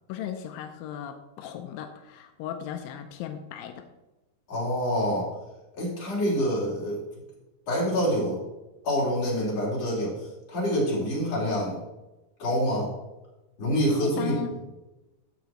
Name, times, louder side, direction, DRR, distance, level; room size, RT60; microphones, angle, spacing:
voice 1, 0.1-3.9 14.0-14.5, left 9 dB, 90° left, 6 dB, 2.5 m, -36 dB
voice 2, 4.5-5.3 5.8-7.0 7.7-8.4 8.8-11.8 12.4-12.9 13.6-14.4, equal, 45° left, -6 dB, 4.7 m, -26 dB
12.5 x 7.8 x 3.0 m, 1.0 s
omnidirectional pair, 4.0 m